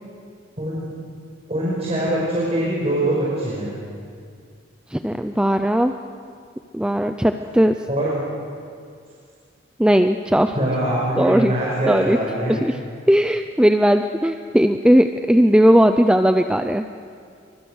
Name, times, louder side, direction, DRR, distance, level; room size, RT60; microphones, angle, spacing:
voice 1, 1.5-3.7 7.9-8.1 10.5-12.6, right 1 dB, 35° right, -5 dB, 5.6 m, -23 dB
voice 2, 4.9-6.0 6.7-7.8 9.8-10.5 11.2-11.5 11.9-12.2 12.5-12.8 13.1-16.8, equal, 5° right, 7 dB, 0.6 m, -17 dB
29.0 x 23.5 x 6.4 m, 2.2 s
head